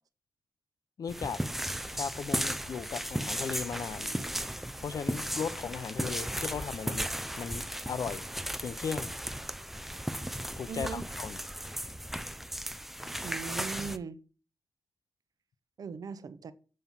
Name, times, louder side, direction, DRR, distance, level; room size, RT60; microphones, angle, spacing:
voice 1, 1.0-1.4 1.9-4.1 4.8-7.1 7.4-8.3 8.6-9.1 10.6-11.4, left 6 dB, 75° left, 0.6 m, -37 dB
sound 1, 1.1-14.0, equal, 5° right, 0.6 m, -35 dB
sound 2, 3.5-8.7 8.9-9.0 9.3-10.1, right 3 dB, 40° right, 1.6 m, -57 dB
voice 2, 10.7-11.0 13.2-14.2 15.8-16.5, right 5 dB, 80° right, 0.8 m, -39 dB
7.7 x 5.5 x 7.2 m
wide cardioid pair, 110°, 6 cm